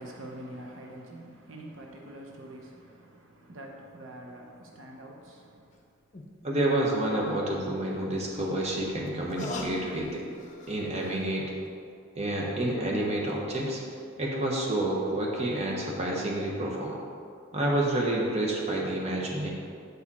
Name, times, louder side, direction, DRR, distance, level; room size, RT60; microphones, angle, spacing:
voice 1, 0.0-5.7, right 1 dB, 75° right, 0 dB, 0.8 m, -45 dB
sound 1, 5.7-5.8 6.1-6.3 8.1-11.3 11.6-11.7, left 2 dB, 40° left, 0.7 m, -41 dB
voice 2, 6.4-10.2 10.7-11.5 12.1-13.8 14.2-17.0 17.5-19.5, right 1 dB, 35° right, -2 dB, 1.1 m, -29 dB
8.2 x 4.9 x 4.2 m, 2.4 s
head